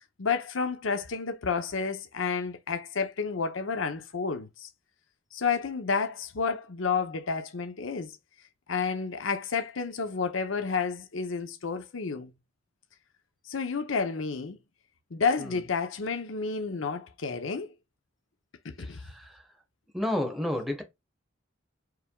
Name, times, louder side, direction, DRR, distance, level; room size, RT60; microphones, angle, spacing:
voice 1, 0.2-4.7 5.3-8.2 8.7-12.3 13.5-14.6 15.1-17.7 18.6-19.0, left 5 dB, 75° left, 0.7 m, -30 dB
voice 2, 18.8-19.4 19.9-20.8, left 1 dB, ahead, 1.1 m, -31 dB
4.8 x 3.5 x 2.2 m
head